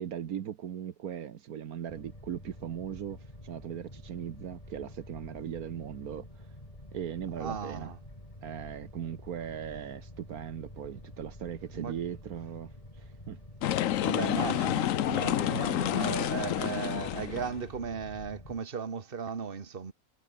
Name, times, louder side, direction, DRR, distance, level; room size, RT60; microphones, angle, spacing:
voice 1, 0.0-6.4 6.9-7.9 8.4-12.7 13.0-13.4 14.5-14.8 15.5-15.8, right 9 dB, 75° right, 1.5 m, -39 dB
sound 1, 1.9-18.6, left 1 dB, 20° left, 5.4 m, -49 dB
voice 2, 7.4-8.0 11.7-12.0 14.0-19.9, right 6 dB, 40° right, 1.6 m, -36 dB
sound 2, 13.6-17.6, left 12 dB, 65° left, 1.0 m, -29 dB
omnidirectional pair, 1.6 m